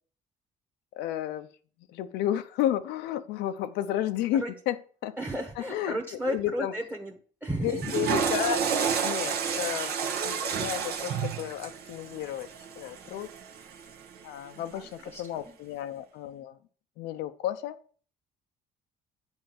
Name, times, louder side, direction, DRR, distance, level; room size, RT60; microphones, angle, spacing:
voice 1, 0.9-1.5 1.9-5.2 5.7-6.0 6.3-6.7 7.6-8.6 9.0-10.0 10.2-12.5 12.8-13.3 14.2-16.6 17.0-17.8, left 12 dB, 90° left, 8 dB, 0.7 m, -32 dB
voice 2, 5.2-7.9 9.5-9.8 14.5-15.5, equal, 10° right, 2 dB, 1.2 m, -35 dB
Water / Toilet flush, 7.6-13.9, right 6 dB, 70° right, 1.3 m, -30 dB
8.1 x 4.5 x 7.0 m, 0.43 s
cardioid pair, 110°, 17 cm